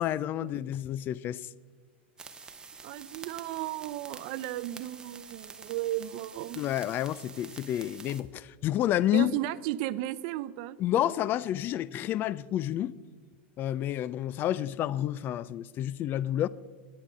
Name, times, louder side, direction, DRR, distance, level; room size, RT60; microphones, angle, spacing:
voice 1, 0.0-1.4 6.6-9.4 10.8-12.9 13.6-16.5, left 12 dB, 35° left, 0.3 m, -29 dB
sound 1, 2.2-8.2, right 5 dB, 15° right, 0.8 m, -47 dB
voice 2, 2.8-6.6 9.1-10.8, right 14 dB, 55° right, 0.5 m, -34 dB
10.5 x 9.6 x 5.0 m
supercardioid pair, 130°, 6 cm